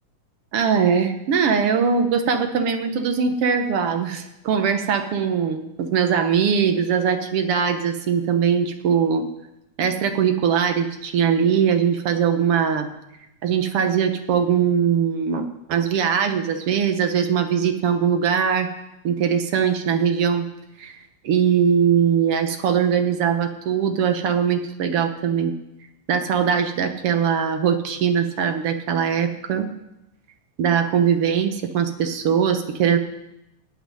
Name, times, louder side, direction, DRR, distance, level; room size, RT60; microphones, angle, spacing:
voice 1, 0.5-9.3 9.8-12.9 13.4-18.7 19.0-20.5 20.8-20.9 21.2-25.5 26.1-29.7 30.6-33.0, right 7 dB, 60° right, 7 dB, 1.7 m, -21 dB
16.5 x 6.0 x 9.9 m, 0.89 s
omnidirectional pair, 3.5 m